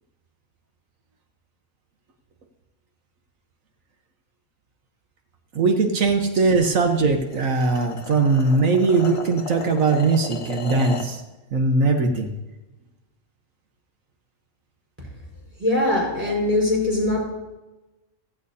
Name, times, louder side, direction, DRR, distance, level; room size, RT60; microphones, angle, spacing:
voice 1, 5.5-11.2 11.5-12.3, right 3 dB, 80° right, 4 dB, 1.5 m, -20 dB
sound 1, 6.8-11.2, left 4 dB, 25° left, 1.0 m, -35 dB
voice 2, 15.6-17.2, left 2 dB, 10° right, -3 dB, 4.8 m, -21 dB
15.5 x 15.0 x 2.7 m, 1.1 s
omnidirectional pair, 1.4 m